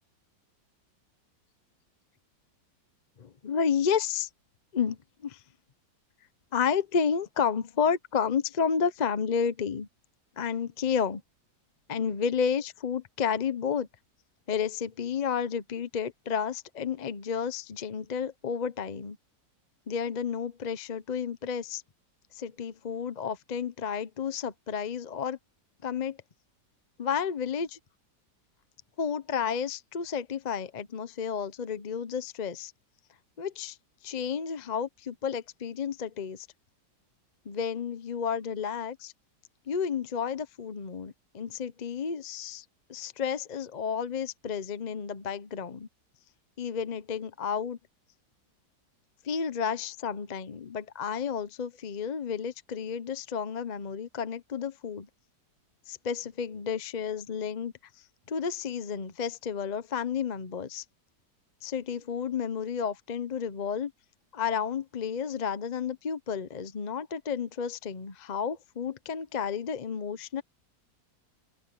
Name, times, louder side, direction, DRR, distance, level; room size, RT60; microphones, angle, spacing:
voice 1, 3.2-4.3 4.7-5.4 6.5-9.9 10.4-11.2 11.9-13.9 14.5-19.2 19.9-21.8 22.3-25.4 25.8-26.2 27.0-27.8 29.0-32.7 33.4-33.8 34.0-36.5 37.5-39.1 39.7-42.6 42.9-45.9 46.6-47.8 49.2-55.1 55.9-57.7 58.3-60.8 61.6-63.9 64.3-70.4, left 7 dB, 45° left, 0.5 m, -31 dB
open air
omnidirectional pair, 1.8 m